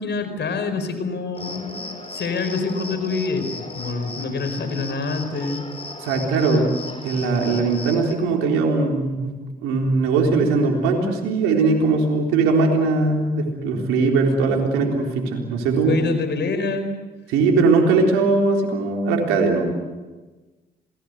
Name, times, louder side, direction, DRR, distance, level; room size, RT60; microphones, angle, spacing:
voice 1, 0.0-5.6 15.8-16.9, left 4 dB, 60° left, 9 dB, 4.9 m, -26 dB
Cricket, 1.3-8.1, left 2 dB, 30° left, 6.0 m, -36 dB
voice 2, 6.0-6.7 7.0-16.0 17.3-19.7, right 3 dB, 90° right, 1 dB, 3.9 m, -20 dB
27.5 x 20.0 x 8.1 m, 1.2 s
hypercardioid pair, 45°, 20 cm